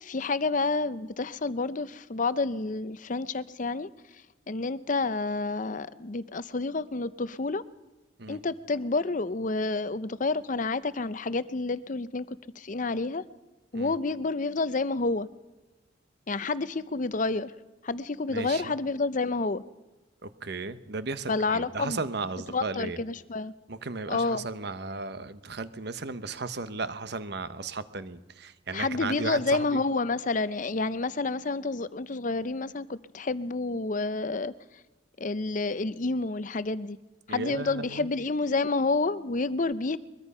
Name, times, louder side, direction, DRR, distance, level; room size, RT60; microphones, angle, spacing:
voice 1, 0.0-3.9 4.5-7.6 8.3-13.2 13.7-15.3 16.3-17.5 17.8-19.6 21.3-22.0 22.5-23.5 24.1-24.5 28.7-34.5 35.2-37.0 37.3-40.0, left 3 dB, 40° left, 16 dB, 0.6 m, -29 dB
voice 2, 18.3-18.7 20.2-23.0 23.7-29.8 37.3-38.1, right 3 dB, 60° right, 13 dB, 1.0 m, -35 dB
22.5 x 21.5 x 5.5 m, 1.1 s
head